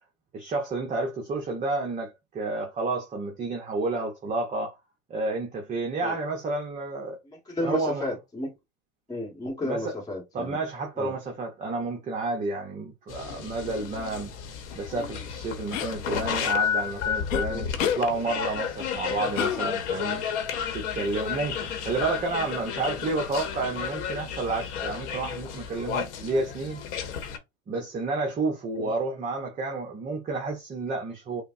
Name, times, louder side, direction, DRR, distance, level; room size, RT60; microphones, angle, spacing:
voice 1, 0.3-4.7 5.1-7.2 7.6-8.1 9.6-9.9 10.3-14.3 14.7-20.2 20.7-26.8 27.7-31.4, right 3 dB, 20° right, 0.7 m, -30 dB
voice 2, 7.3-8.5 9.1-10.6 11.0-11.1 17.5-17.7 28.7-28.9, left 1 dB, 10° left, 1.2 m, -33 dB
sound 1, 13.1-27.4, left 8 dB, 60° left, 1.0 m, -32 dB
sound 2, 15.7-16.0 17.3-17.4 17.8-18.0 19.3-20.0, left 10 dB, 80° left, 0.7 m, -29 dB
5.0 x 2.0 x 2.6 m
hypercardioid pair, 110°, 38 cm